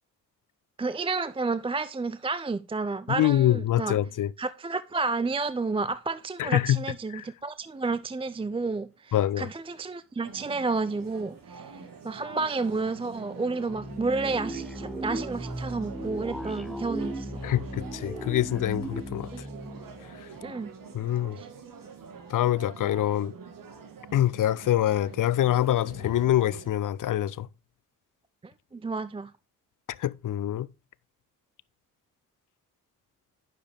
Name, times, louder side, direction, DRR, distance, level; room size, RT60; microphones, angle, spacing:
voice 1, 0.8-4.0 4.4-17.3 19.3-19.4 20.4-20.7 21.4-21.5 28.4-29.3, right 3 dB, 15° right, 0.4 m, -31 dB
voice 2, 3.1-4.3 6.4-6.8 7.1-7.2 9.1-9.5 17.4-19.3 20.9-21.4 22.3-23.3 24.1-27.5 30.0-30.7, left 12 dB, 55° left, 0.5 m, -25 dB
sound 1, 7.6-8.9 9.3-9.4 10.0-19.0, right 4 dB, 80° right, 6.0 m, -50 dB
sound 2, 10.2-26.7, right 5 dB, 60° right, 1.7 m, -46 dB
sound 3, 13.7-20.8, equal, ahead, 0.9 m, -37 dB
9.6 x 6.8 x 3.5 m
supercardioid pair, 50°, 37 cm